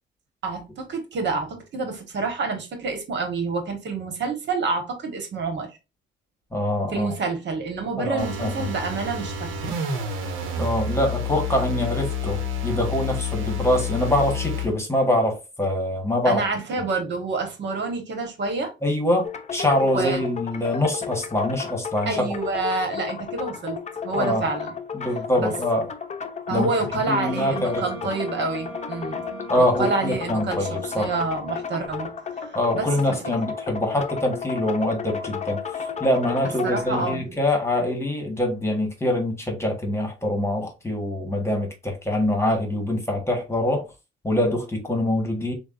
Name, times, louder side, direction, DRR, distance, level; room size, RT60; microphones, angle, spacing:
voice 1, 0.4-5.7 6.9-9.7 16.2-18.7 19.9-20.2 22.0-24.7 25.4-25.5 26.5-32.1 32.5-33.5 36.6-37.3, right 3 dB, 65° right, 1.4 m, -28 dB
voice 2, 6.5-7.1 8.0-8.5 10.6-16.4 18.8-22.3 24.1-24.4 24.9-25.9 26.5-26.7 27.1-27.9 29.5-31.1 32.5-35.6 36.0-43.9 44.2-45.5, left 1 dB, 15° left, 1.5 m, -24 dB
sound 1, 8.2-14.7, left 3 dB, 85° right, 1.0 m, -29 dB
sound 2, 19.2-37.2, left 6 dB, 35° left, 0.6 m, -33 dB
Wind instrument woodwind instrument, 27.0-32.1, right 4 dB, 5° right, 1.7 m, -42 dB
6.5 x 2.4 x 2.5 m
cardioid pair, 90°, 20 cm